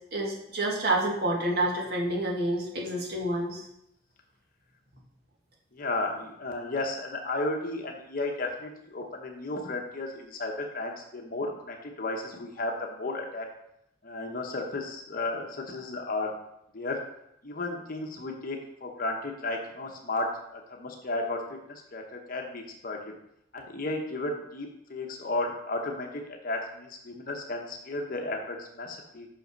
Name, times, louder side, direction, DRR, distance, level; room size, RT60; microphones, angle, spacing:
voice 1, 0.1-3.6, right 1 dB, 60° right, -1 dB, 1.7 m, -28 dB
voice 2, 5.7-13.5 14.0-16.3 16.7-17.0 17.4-21.4 21.7-23.0 23.5-29.3, left 2 dB, 50° left, 2 dB, 0.9 m, -34 dB
5.9 x 5.6 x 5.2 m, 0.80 s
head